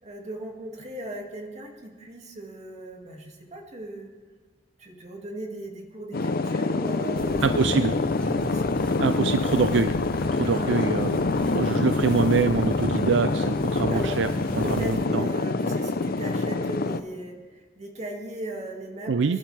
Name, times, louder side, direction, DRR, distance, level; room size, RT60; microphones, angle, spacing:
voice 1, 0.0-4.1 4.8-7.8 8.3-9.3 10.4-10.9 13.9-14.2 14.6-19.4, right 1 dB, 35° right, 1 dB, 2.2 m, -38 dB
sound 1, 6.1-17.0, left 3 dB, 55° left, 0.6 m, -26 dB
sound 2, 7.1-14.9, equal, 5° left, 4.6 m, -35 dB
voice 2, 7.4-7.9 9.0-9.9 10.3-11.2 11.5-14.3 14.6-15.3 19.1-19.4, right 5 dB, 70° right, 11 dB, 0.4 m, -24 dB
26.0 x 11.5 x 3.4 m, 1.4 s
head